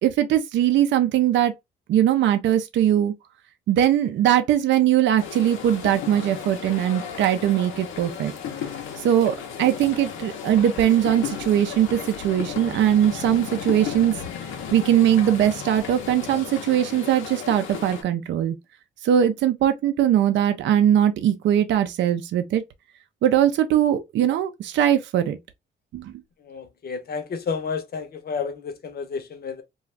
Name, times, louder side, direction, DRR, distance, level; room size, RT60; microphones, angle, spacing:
voice 1, 0.0-1.5 1.9-3.1 3.7-8.3 9.0-14.2 14.7-18.5 19.0-22.6 23.2-25.4 25.9-26.1, right 11 dB, 65° right, 0.4 m, -20 dB
sound 1, 5.2-18.0, left 8 dB, 85° left, 0.7 m, -34 dB
voice 2, 26.5-29.6, left 5 dB, 50° left, 0.7 m, -31 dB
2.4 x 2.3 x 3.1 m
cardioid pair, 90°, 20 cm